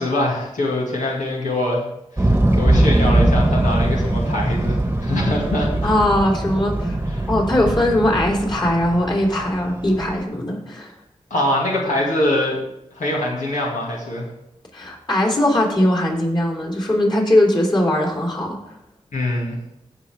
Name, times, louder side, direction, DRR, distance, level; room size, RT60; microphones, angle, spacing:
voice 1, 0.0-1.8 2.2-5.9 7.0-7.3 11.3-12.6 12.9-14.3 19.1-19.6, left 1 dB, 90° left, -3 dB, 2.2 m, -23 dB
sound 1, 2.2-10.2, right 1 dB, 15° right, 1.2 m, -21 dB
voice 2, 5.8-7.0 7.3-10.9 14.7-18.6, left 1 dB, 35° left, 0 dB, 3.3 m, -20 dB
15.5 x 5.6 x 3.6 m, 0.85 s
cardioid pair, 55°, 13 cm